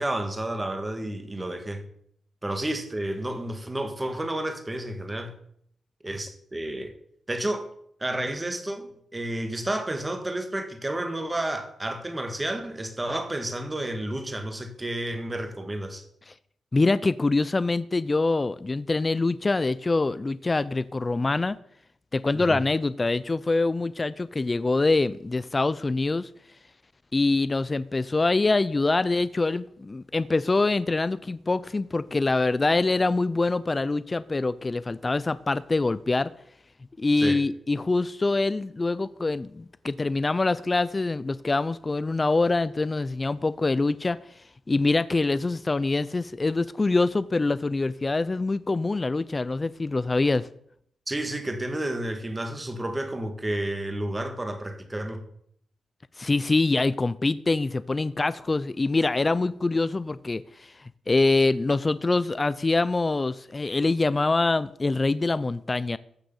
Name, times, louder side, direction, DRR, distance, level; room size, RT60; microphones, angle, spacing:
voice 1, 0.0-1.8 2.4-5.3 6.0-6.9 7.3-7.7 8.0-16.0 22.3-22.6 37.2-37.4 51.1-55.2, right 1 dB, 15° right, 1.6 m, -31 dB
voice 2, 16.7-21.6 22.1-26.3 27.1-36.3 37.0-44.2 44.7-50.5 56.2-60.7 61.1-66.0, left 3 dB, 20° left, 0.4 m, -24 dB
14.5 x 6.5 x 7.0 m
wide cardioid pair, 165°, 0 cm